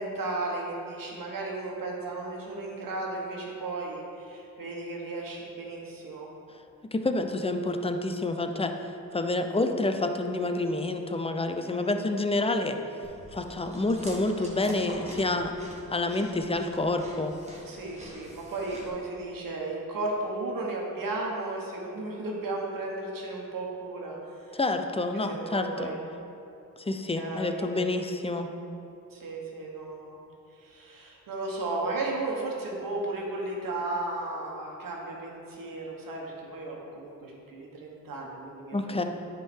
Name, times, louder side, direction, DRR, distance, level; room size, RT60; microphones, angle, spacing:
voice 1, 0.0-6.3 11.5-11.9 17.6-24.6 25.1-26.0 27.1-27.8 29.1-30.2 30.5-39.0, right 2 dB, 75° right, -1 dB, 1.4 m, -35 dB
voice 2, 6.9-8.7 9.1-12.8 13.3-15.5 15.9-17.3 24.5-25.9 26.9-28.5 38.7-39.0, left 2 dB, 15° left, 6 dB, 0.5 m, -28 dB
Chewing mastication, 13.0-18.9, equal, 20° right, 1.5 m, -45 dB
9.9 x 3.8 x 4.4 m, 2.8 s
cardioid pair, 80°, 34 cm